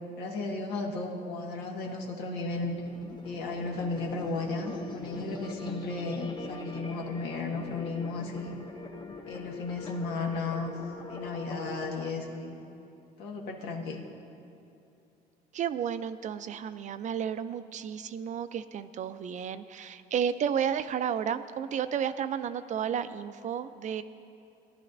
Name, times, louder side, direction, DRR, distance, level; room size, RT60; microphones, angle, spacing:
voice 1, 0.2-2.7 3.2-8.6 9.3-10.7 11.1-12.6 13.2-14.0, left 3 dB, 85° left, 0 dB, 1.6 m, -34 dB
sound 1, 2.5-12.1, left 3 dB, 25° left, 0.9 m, -42 dB
voice 2, 15.5-24.0, right 8 dB, 45° right, 12 dB, 0.4 m, -32 dB
18.0 x 11.5 x 2.6 m, 2.7 s
cardioid pair, 110°, 17 cm